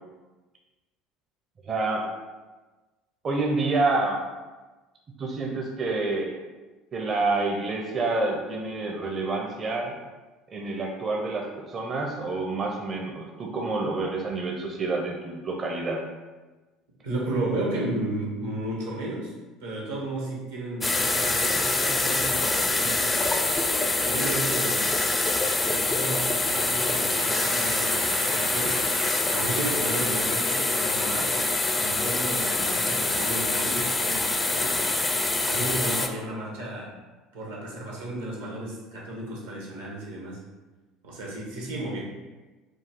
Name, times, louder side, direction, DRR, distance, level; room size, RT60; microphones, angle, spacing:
voice 1, 1.7-2.1 3.2-4.2 5.2-6.3 6.9-10.0 10.5-16.0, right 3 dB, 35° right, 0 dB, 0.6 m, -28 dB
voice 2, 17.0-19.3 19.6-23.3 24.0-25.0 25.6-28.8 29.3-31.5 31.7-34.8 35.4-36.9 37.3-40.4 41.0-42.0, right 2 dB, 85° right, -3 dB, 1.2 m, -33 dB
sound 1, 20.8-36.1, left 2 dB, 20° left, 0.5 m, -25 dB
Applause, 26.5-31.5, right 2 dB, 60° right, 0.9 m, -39 dB
4.7 x 2.3 x 3.7 m, 1.2 s
hypercardioid pair, 65°, 0 cm